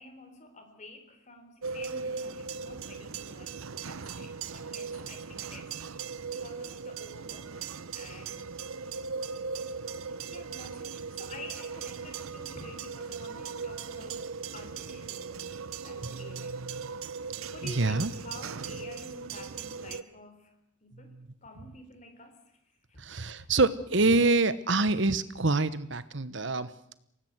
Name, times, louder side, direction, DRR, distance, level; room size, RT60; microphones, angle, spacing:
voice 1, 0.0-3.6 3.9-7.7 7.9-8.5 9.5-9.6 10.3-16.6 17.5-20.5 20.8-21.1 21.4-22.6 22.9-23.0, left 2 dB, 35° left, 7 dB, 3.7 m, -50 dB
sound 1, 1.6-20.0, right 5 dB, 85° right, 0.8 m, -38 dB
voice 2, 16.0-16.8 17.6-18.1 21.1-21.3 23.0-26.7, right 3 dB, 60° right, 15 dB, 1.2 m, -26 dB
24.5 x 18.0 x 8.1 m, 0.77 s
head